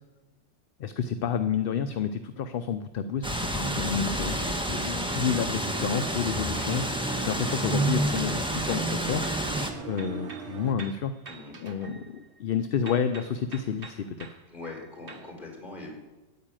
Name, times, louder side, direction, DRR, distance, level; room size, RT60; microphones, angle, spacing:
voice 1, 0.8-6.8 7.2-9.3 9.8-11.1 11.6-14.3, left 7 dB, 55° left, 9 dB, 0.7 m, -30 dB
sound 1, 3.2-9.7, right 1 dB, 5° right, 1.1 m, -29 dB
sound 2, 5.6-10.7, right 7 dB, 75° right, 1.2 m, -41 dB
sound 3, 8.1-9.5 9.9-12.5 12.9-15.3, right 4 dB, 50° right, 1.4 m, -48 dB
voice 2, 11.2-11.6 14.5-15.9, left 3 dB, 40° left, -2 dB, 4.6 m, -42 dB
9.8 x 9.6 x 8.9 m, 1.1 s
omnidirectional pair, 1.3 m